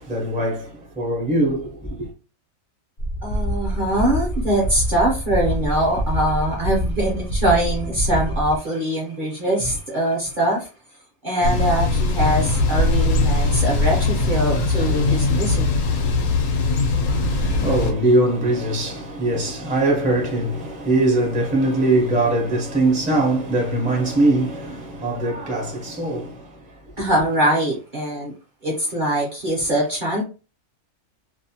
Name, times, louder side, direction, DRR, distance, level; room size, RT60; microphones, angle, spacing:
voice 1, 0.0-2.1 17.0-26.8, right 2 dB, 10° right, 0.4 m, -22 dB
sound 1, 3.0-8.6, equal, 60° left, 0.5 m, -26 dB
voice 2, 3.2-10.7 11.2-15.7 27.0-28.3 28.6-30.2, right 1 dB, 50° right, 0.7 m, -22 dB
Thunder / Bicycle, 11.4-17.9, left 3 dB, 85° left, 1.0 m, -20 dB
2.6 x 2.0 x 2.7 m
omnidirectional pair, 1.5 m